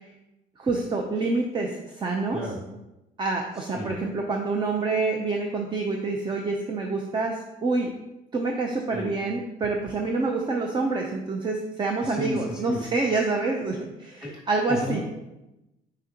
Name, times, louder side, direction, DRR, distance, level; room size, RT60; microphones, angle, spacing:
voice 1, 0.6-2.4 3.2-7.9 8.3-15.0, right 3 dB, 25° right, 2 dB, 0.6 m, -27 dB
voice 2, 3.6-3.9 8.9-9.0 12.0-12.8 14.2-14.3 14.7-15.0, equal, 5° right, -3 dB, 2.2 m, -32 dB
6.4 x 5.1 x 2.9 m, 0.96 s
cardioid pair, 110°, 17 cm